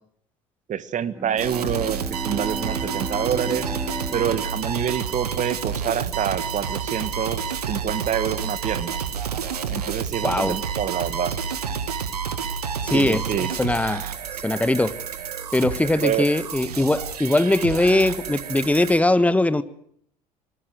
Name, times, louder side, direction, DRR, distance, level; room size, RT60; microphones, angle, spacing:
voice 1, 0.7-2.0 2.2-3.7 4.1-9.0 9.7-11.3 12.9-13.5 16.0-16.3, right 9 dB, 40° right, 1.8 m, -27 dB
Bowed string instrument, 1.0-5.9, right 1 dB, 10° right, 2.4 m, -35 dB
sound 1, 1.4-19.0, right 7 dB, 80° right, 1.7 m, -29 dB
voice 2, 10.2-10.6 12.8-14.0 14.4-15.0 15.5-19.6, left 2 dB, 5° left, 1.5 m, -21 dB
25.5 x 21.0 x 6.5 m
figure-of-eight pair, 60°, 20 cm